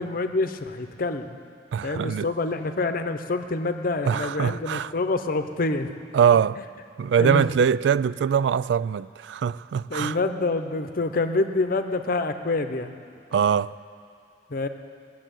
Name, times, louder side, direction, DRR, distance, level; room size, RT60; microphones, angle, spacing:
voice 1, 0.0-1.4 1.8-5.9 6.6-6.7 7.2-7.5 9.9-13.0 14.5-14.7, left 3 dB, 55° left, 0.8 m, -27 dB
voice 2, 1.7-2.3 4.0-4.9 6.1-6.6 7.0-10.2 13.3-13.8, right 7 dB, 85° right, 0.3 m, -22 dB
20.0 x 7.5 x 9.1 m
head